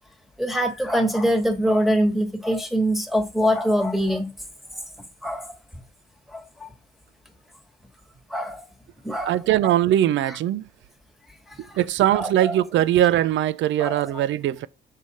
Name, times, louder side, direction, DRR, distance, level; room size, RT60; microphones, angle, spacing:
voice 1, 0.4-4.3 5.2-5.5 6.3-6.7 8.3-8.6 9.0-9.7 12.1-12.6 13.8-14.2, equal, ahead, 1.4 m, -24 dB
voice 2, 9.3-10.6 11.8-14.7, right 12 dB, 70° right, 0.5 m, -21 dB
6.6 x 4.9 x 4.1 m
cardioid pair, 90°, 20 cm